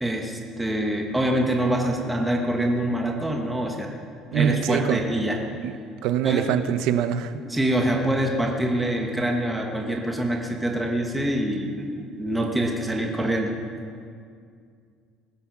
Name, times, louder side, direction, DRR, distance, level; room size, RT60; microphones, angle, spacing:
voice 1, 0.0-3.9 4.3-5.4 6.2-6.5 7.5-13.5, right 1 dB, 5° right, 1 dB, 1.1 m, -25 dB
voice 2, 4.3-5.0 5.6-5.7 6.0-7.4, right 9 dB, 65° right, 11 dB, 0.8 m, -23 dB
19.0 x 9.9 x 6.0 m, 2.2 s
cardioid pair, 165°, 0 cm